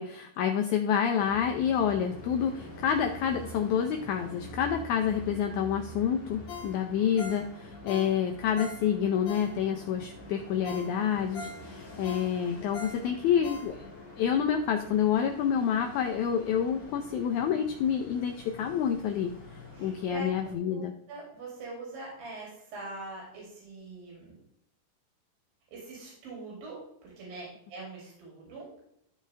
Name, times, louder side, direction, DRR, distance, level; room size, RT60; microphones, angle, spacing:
voice 1, 0.0-13.9 14.2-19.3 19.8-20.9, left 8 dB, 80° left, 4 dB, 1.7 m, -28 dB
sound 1, 1.2-20.5, left 1 dB, 20° left, 1.5 m, -46 dB
Ringtone, 6.5-9.9 10.3-10.4 10.7-14.1 14.5-14.6, left 5 dB, 60° left, 2.2 m, -43 dB
voice 2, 19.7-20.3 20.7-24.4 25.7-28.7, right 2 dB, 80° right, -3 dB, 4.6 m, -43 dB
13.5 x 4.8 x 3.3 m, 0.74 s
omnidirectional pair, 4.1 m